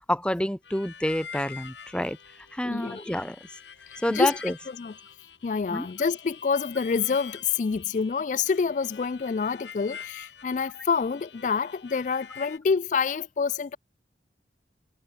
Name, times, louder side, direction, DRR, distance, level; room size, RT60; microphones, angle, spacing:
voice 1, 0.1-2.2 2.5-3.4 4.0-4.5 5.7-5.9, equal, 5° left, 1.3 m, -28 dB
Harmonica, 0.6-12.6, left 7 dB, 85° left, 3.6 m, -46 dB
voice 2, 2.6-3.0 4.1-4.3 4.8-4.9 5.4-13.8, left 5 dB, 45° left, 0.3 m, -27 dB
head